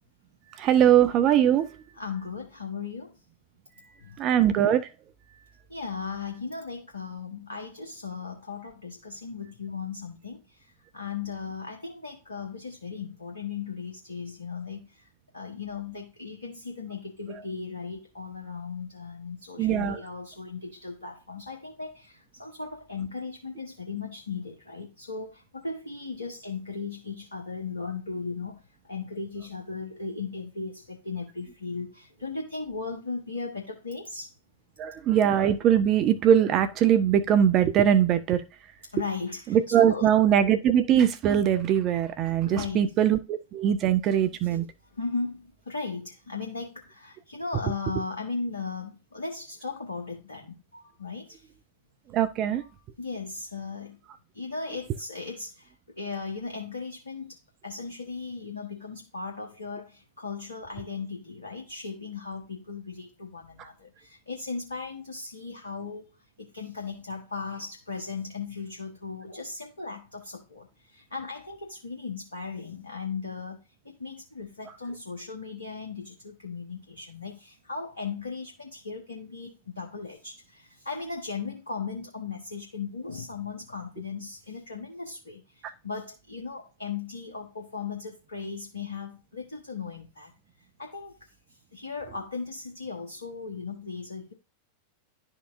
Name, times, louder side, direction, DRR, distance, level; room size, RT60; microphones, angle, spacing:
voice 1, 0.6-1.7 4.2-4.9 19.6-20.0 34.8-38.4 39.5-44.6 52.1-52.6, right 9 dB, 35° right, 0.5 m, -21 dB
voice 2, 1.9-3.2 4.0-4.3 5.7-15.1 15.3-34.3 38.8-40.1 42.4-42.9 44.5-44.6 44.8-51.5 52.5-52.7 53.0-54.0 54.3-73.6 73.8-90.3 90.6-94.3, left 4 dB, 75° left, 1.0 m, -37 dB
11.5 x 4.5 x 2.5 m
figure-of-eight pair, 90°, 0 cm